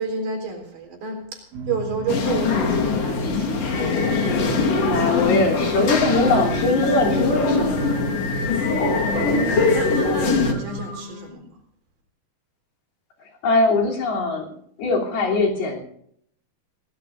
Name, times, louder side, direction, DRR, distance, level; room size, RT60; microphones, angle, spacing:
voice 1, 0.0-1.4 1.7-3.8 9.0-11.5, right 3 dB, 85° right, 2 dB, 5.7 m, -29 dB
sound 1, 1.5-10.9, right 4 dB, 65° right, 3.5 m, -34 dB
sound 2, 2.1-10.5, left 4 dB, 50° left, 2.3 m, -23 dB
Singing, 3.7-11.3, left 4 dB, 35° left, 5.1 m, -33 dB
voice 2, 4.7-8.0 13.4-14.5 14.8-15.8, left 3 dB, 75° left, -2 dB, 5.1 m, -21 dB
26.5 x 18.0 x 2.6 m, 0.67 s
omnidirectional pair, 4.4 m